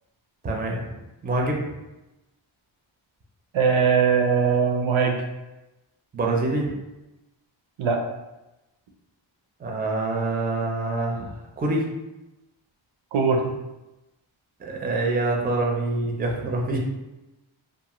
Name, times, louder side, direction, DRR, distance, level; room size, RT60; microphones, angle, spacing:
voice 1, 0.4-1.0 1.2-1.6 6.1-6.7 9.6-11.9 14.6-16.8, right 2 dB, 20° right, 0 dB, 0.4 m, -26 dB
voice 2, 3.5-5.2 7.8-8.0 13.1-13.4, right 6 dB, 75° right, 3 dB, 0.5 m, -20 dB
2.6 x 2.4 x 2.9 m, 0.99 s
wide cardioid pair, 135°, 48 cm